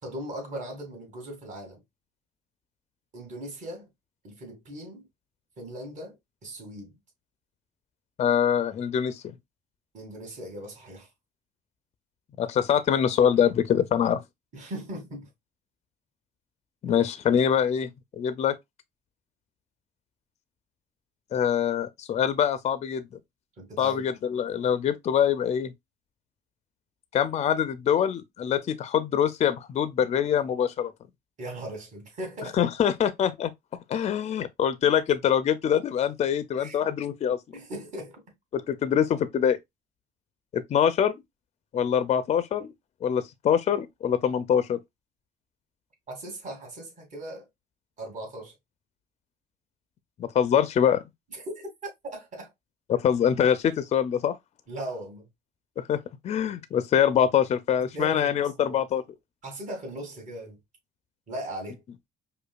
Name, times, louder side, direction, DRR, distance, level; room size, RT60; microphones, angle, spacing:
voice 1, 0.0-1.8 3.1-3.9 4.2-5.1 5.6-6.2 6.4-7.0 9.9-11.1 14.5-15.3 23.6-24.1 31.4-32.6 36.5-36.9 37.5-38.2 46.1-47.5 48.0-48.5 51.3-51.7 52.1-52.5 54.7-55.3 57.8-58.4 58.7-58.8 59.4-60.6 61.3-61.8, right 1 dB, 45° right, 2.1 m, -38 dB
voice 2, 8.2-9.3 12.4-14.2 16.8-18.6 21.3-23.0 23.8-25.7 27.1-30.9 32.5-33.5 33.9-37.4 38.5-39.6 40.5-41.1 41.7-42.7 43.0-44.8 50.2-51.0 52.9-54.4 55.8-59.0, left 8 dB, 40° left, 0.5 m, -24 dB
5.1 x 2.3 x 2.4 m
cardioid pair, 110°, 17 cm